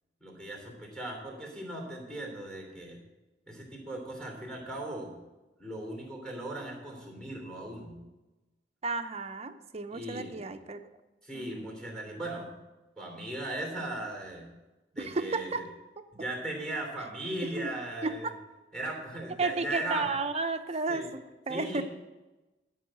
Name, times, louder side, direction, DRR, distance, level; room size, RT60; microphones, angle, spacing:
voice 1, 0.2-3.0 3.5-5.2 5.6-8.0 9.9-10.4 11.2-12.5 13.0-14.5 14.9-15.6 16.1-18.3 18.7-20.1 20.9-21.1 21.5-21.8, right 1 dB, 5° left, 1 dB, 3.2 m, -38 dB
voice 2, 8.8-10.8 11.3-11.7 15.0-15.6 17.6-17.7 18.0-18.3 19.4-21.8, right 3 dB, 35° right, 8 dB, 0.7 m, -33 dB
12.0 x 5.6 x 7.5 m, 1.1 s
head